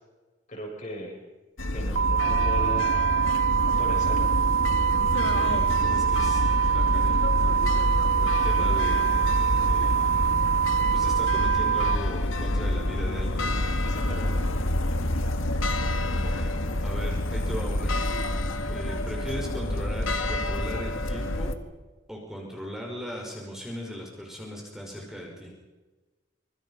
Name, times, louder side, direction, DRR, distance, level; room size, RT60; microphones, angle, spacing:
voice 1, 0.5-1.1 1.7-3.0 3.8-4.4 13.9-14.5, equal, 40° left, 0 dB, 7.6 m, -37 dB
sound 1, 1.6-21.5, left 1 dB, 85° left, 1.9 m, -27 dB
sound 2, 2.0-12.0, right 9 dB, 65° right, 1.1 m, -24 dB
voice 2, 5.2-6.4 6.7-7.5 8.2-10.4 10.9-13.6 16.1-18.0 18.7-21.5 22.1-25.5, equal, ahead, -1 dB, 5.6 m, -38 dB
25.5 x 25.0 x 5.8 m, 1.2 s
head